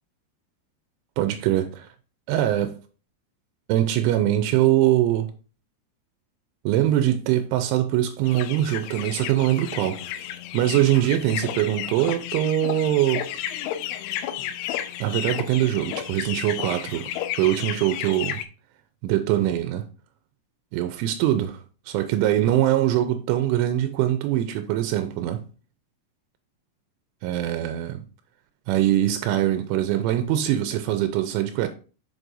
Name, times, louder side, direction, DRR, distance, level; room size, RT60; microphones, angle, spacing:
voice 1, 1.2-1.9 2.3-2.8 3.7-5.3 6.7-10.2 10.5-13.3 15.0-17.1 17.4-18.4 19.0-19.8 20.7-25.4 27.2-28.0 28.7-31.7, right 13 dB, 85° right, 3.0 m, -23 dB
sound 1, 8.2-18.4, left 11 dB, 85° left, 2.9 m, -32 dB
7.0 x 6.1 x 2.6 m
omnidirectional pair, 5.4 m